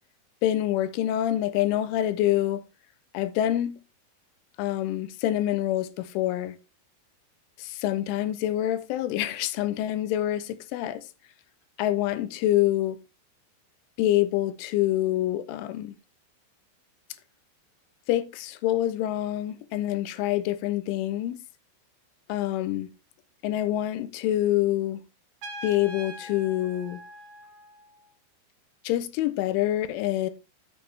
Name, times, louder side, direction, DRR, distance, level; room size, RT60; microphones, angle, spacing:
voice 1, 0.4-2.6 3.1-3.8 4.6-6.6 7.6-11.1 11.8-13.0 14.0-15.9 18.1-21.4 22.3-22.9 23.4-25.0 25.6-27.0 28.8-30.3, left 13 dB, 80° left, 3.1 m, -26 dB
Trumpet, 25.4-28.1, equal, 80° right, 1.7 m, -42 dB
12.0 x 7.1 x 3.3 m
omnidirectional pair, 5.8 m